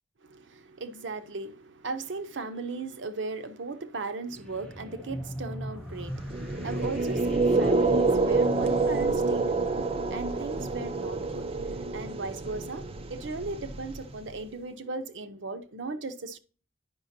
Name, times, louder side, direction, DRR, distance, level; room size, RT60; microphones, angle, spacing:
voice 1, 0.2-16.4, right 3 dB, 80° right, 0.7 m, -37 dB
sound 1, 4.3-9.3, equal, 5° left, 0.7 m, -40 dB
sound 2, 6.2-14.3, right 3 dB, 30° right, 0.5 m, -27 dB
9.6 x 5.8 x 2.7 m
head